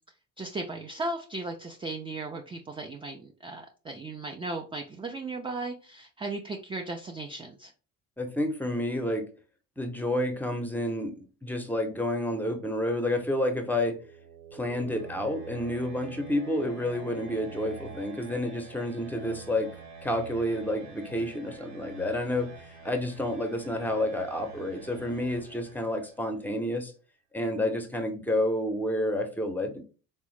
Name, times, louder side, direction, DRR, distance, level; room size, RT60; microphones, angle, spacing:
voice 1, 0.4-7.7, right 2 dB, 15° right, 3 dB, 0.3 m, -36 dB
voice 2, 8.2-9.3 9.8-14.0 14.5-19.7 20.0-22.5 22.8-26.9 27.3-29.8, left 1 dB, 5° left, 6 dB, 0.7 m, -29 dB
sound 1, 13.5-26.4, right 5 dB, 70° right, 1.1 m, -46 dB
3.5 x 2.1 x 3.1 m, 0.37 s
hypercardioid pair, 60°, 40 cm